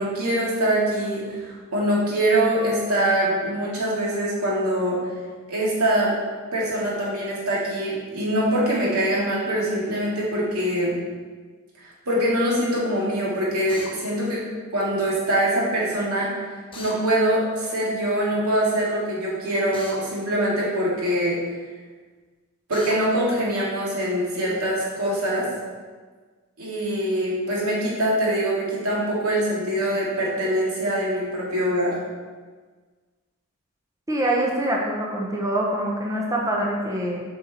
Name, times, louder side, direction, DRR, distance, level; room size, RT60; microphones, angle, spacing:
voice 1, 0.0-5.0 5.5-6.1 6.5-10.9 11.8-14.4 14.7-16.3 16.8-21.4 22.7-25.5 26.6-31.9, right 1 dB, 80° right, -6 dB, 2.6 m, -23 dB
Drill, 13.7-13.9 16.7-17.0 19.7-20.0 22.7-23.0, left 2 dB, 25° left, 1.2 m, -38 dB
voice 2, 34.1-37.2, right 1 dB, 15° right, -2 dB, 0.9 m, -24 dB
7.8 x 5.6 x 4.3 m, 1.5 s
head